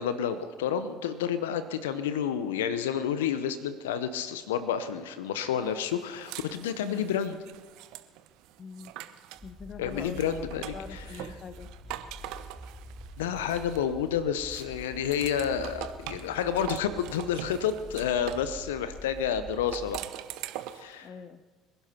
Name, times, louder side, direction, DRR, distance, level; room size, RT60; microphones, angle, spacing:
voice 1, 0.0-7.4 9.8-11.3 13.2-20.0 20.7-21.1, left 8 dB, 80° left, 12 dB, 0.8 m, -30 dB
sound 1, 5.8-9.5 9.9-14.1 14.5-18.5 19.5-20.9, right 13 dB, 65° right, 0.9 m, -43 dB
voice 2, 6.8-7.1 8.6-8.9 9.4-11.7 21.0-21.4, left 5 dB, 40° left, 13 dB, 1.0 m, -43 dB
sound 2, 9.4-20.0, equal, 5° left, 3.0 m, -46 dB
25.0 x 11.0 x 4.4 m, 1.4 s
hypercardioid pair, 60°, 0 cm